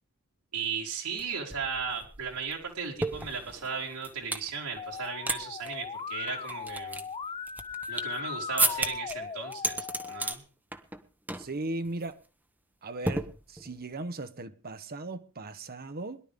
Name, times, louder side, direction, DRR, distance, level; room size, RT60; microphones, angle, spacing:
voice 1, 0.5-7.0 7.9-9.8 10.1-10.4, right 5 dB, 80° right, 3.7 m, -36 dB
sound 1, 1.2-1.3 1.5-4.5 4.9-5.4 5.6-5.8 6.3-8.2 8.6-9.2 9.5-10.4 10.7-11.0 11.3-11.5 11.9-12.1 13.1-13.8, right 2 dB, 10° right, 1.1 m, -32 dB
Musical instrument, 4.8-10.3, left 6 dB, 25° left, 0.6 m, -38 dB
voice 2, 11.4-12.2 12.8-16.2, right 2 dB, 45° right, 1.1 m, -37 dB
21.5 x 11.5 x 3.6 m
head